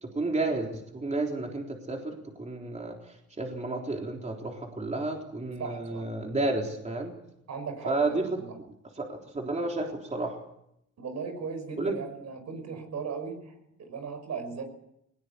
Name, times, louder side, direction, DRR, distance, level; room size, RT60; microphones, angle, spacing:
voice 1, 0.0-7.1 7.9-8.4 9.0-10.4 11.8-12.0, right 2 dB, 25° right, 1 dB, 3.8 m, -31 dB
voice 2, 5.6-6.1 7.5-8.0 8.4-8.5 11.0-14.6, right 5 dB, 60° right, 6 dB, 5.7 m, -37 dB
19.5 x 19.0 x 8.3 m, 0.79 s
cardioid pair, 90°, 30 cm